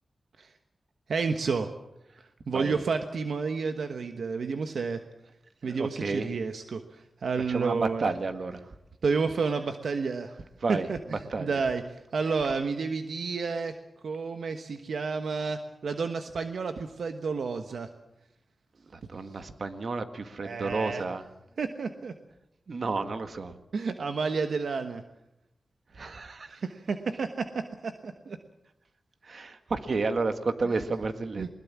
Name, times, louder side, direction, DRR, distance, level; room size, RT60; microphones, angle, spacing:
voice 1, 1.1-1.7 2.5-5.0 5.6-8.1 9.0-10.3 10.7-13.8 14.0-17.9 20.4-21.0 21.6-22.1 23.7-25.0 26.6-28.4 30.6-30.8 31.4-31.5, right 4 dB, 80° right, 6 dB, 1.2 m, -30 dB
voice 2, 5.6-6.3 7.5-8.6 10.6-10.9 11.3-11.5 19.1-21.2 22.7-23.5 26.0-26.6 29.3-31.5, right 3 dB, 60° right, 8 dB, 1.7 m, -31 dB
21.0 x 20.5 x 7.4 m, 0.87 s
wide cardioid pair, 75°, 0 cm